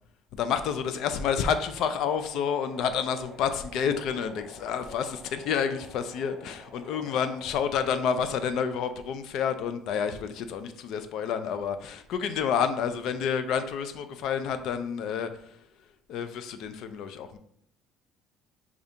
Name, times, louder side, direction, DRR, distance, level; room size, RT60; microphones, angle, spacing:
voice 1, 0.3-15.6 16.1-17.4, left 7 dB, 60° left, 10 dB, 0.4 m, -29 dB
sound 1, 1.4-7.6, left 1 dB, ahead, 1.0 m, -49 dB
4.9 x 2.4 x 2.7 m, 0.68 s
cardioid pair, 140°, 0 cm